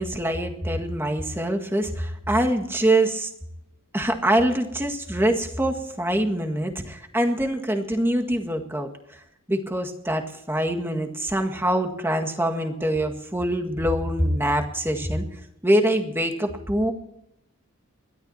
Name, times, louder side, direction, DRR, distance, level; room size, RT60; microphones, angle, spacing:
voice 1, 0.0-3.3 3.9-8.9 9.5-15.3 15.6-16.9, right 1 dB, 10° right, 4 dB, 1.7 m, -24 dB
28.0 x 12.5 x 2.8 m, 0.83 s
head